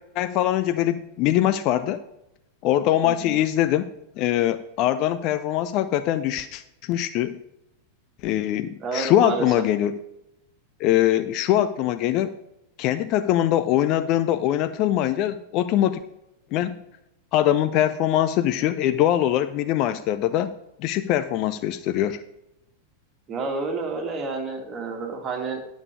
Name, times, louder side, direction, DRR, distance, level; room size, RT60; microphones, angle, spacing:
voice 1, 0.2-2.0 2.6-3.9 4.2-7.4 8.2-9.9 10.8-12.3 12.8-16.0 16.5-16.8 17.3-22.2, left 12 dB, 40° left, 12 dB, 0.5 m, -22 dB
voice 2, 3.0-3.4 8.8-9.5 23.3-25.6, right 4 dB, 25° right, 2 dB, 2.2 m, -29 dB
11.0 x 6.3 x 4.7 m, 0.86 s
figure-of-eight pair, 90°, 0 cm